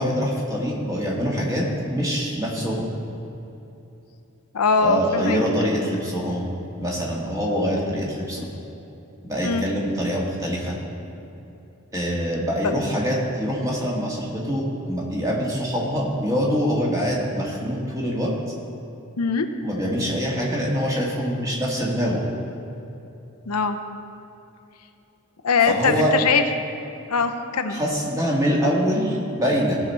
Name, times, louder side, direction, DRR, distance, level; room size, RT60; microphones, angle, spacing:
voice 1, 0.0-2.9 4.8-6.5 6.8-8.5 9.3-10.8 11.9-18.3 19.6-22.2 25.7-26.1 27.7-29.8, equal, 15° right, -3 dB, 1.8 m, -24 dB
voice 2, 4.5-5.4 9.4-9.7 19.2-19.5 23.5-23.8 25.4-26.4 27.1-27.8, left 5 dB, 90° left, 7 dB, 0.7 m, -21 dB
17.0 x 5.9 x 4.3 m, 2.9 s
head